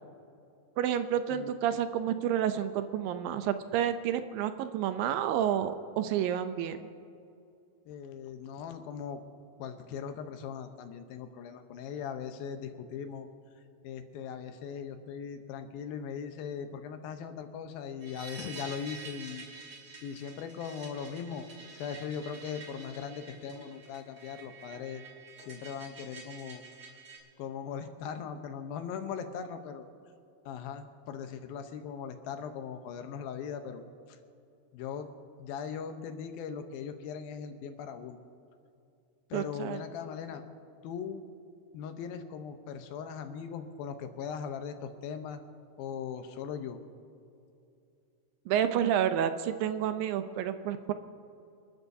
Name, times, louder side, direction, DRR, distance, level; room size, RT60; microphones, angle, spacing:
voice 1, 0.8-6.9 39.3-39.8 48.5-50.9, right 10 dB, 80° right, 10 dB, 2.2 m, -30 dB
voice 2, 7.9-9.2 9.6-13.3 13.8-19.6 20.0-21.5 21.7-25.0 25.5-26.6 27.4-29.9 30.5-34.2 34.7-35.1 35.4-38.2 39.3-40.5 40.8-41.2 41.7-45.4 45.8-46.8, left 7 dB, 80° left, 7 dB, 2.7 m, -39 dB
sound 1, 18.0-27.2, right 4 dB, 35° right, 2.2 m, -48 dB
28.0 x 12.5 x 2.7 m, 2.6 s
omnidirectional pair, 4.3 m